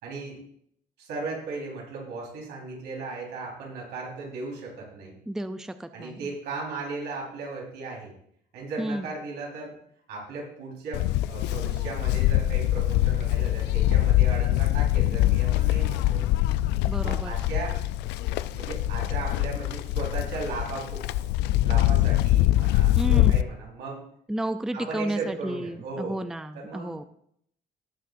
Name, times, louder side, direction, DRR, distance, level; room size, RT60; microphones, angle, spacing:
voice 1, 0.0-0.4 1.0-5.2 5.9-8.1 8.5-9.7 10.1-16.3 17.0-17.8 18.5-21.0 21.6-24.0 24.7-26.2 26.5-27.0, right 3 dB, 80° right, -3 dB, 4.2 m, -36 dB
voice 2, 5.3-6.3 8.8-9.1 16.9-17.3 23.0-23.4 24.3-27.0, right 1 dB, 5° right, 10 dB, 0.5 m, -32 dB
Livestock farm animals working animals, 10.9-23.4, left 15 dB, 90° left, 0.4 m, -23 dB
17.5 x 6.5 x 2.6 m, 0.69 s
cardioid pair, 110°, 17 cm